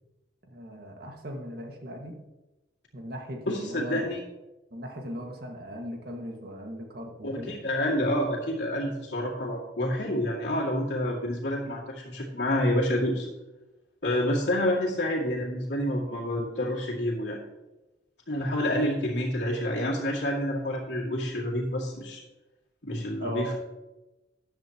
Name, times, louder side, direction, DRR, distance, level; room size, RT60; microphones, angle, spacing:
voice 1, 0.5-2.2 2.9-4.0 4.7-7.6 23.2-23.5, equal, 60° right, 2 dB, 1.9 m, -38 dB
voice 2, 3.5-4.2 7.2-13.3 14.0-17.4 18.3-22.2 22.8-23.5, left 1 dB, 75° left, -8 dB, 2.4 m, -28 dB
14.0 x 10.5 x 3.0 m, 1.0 s
head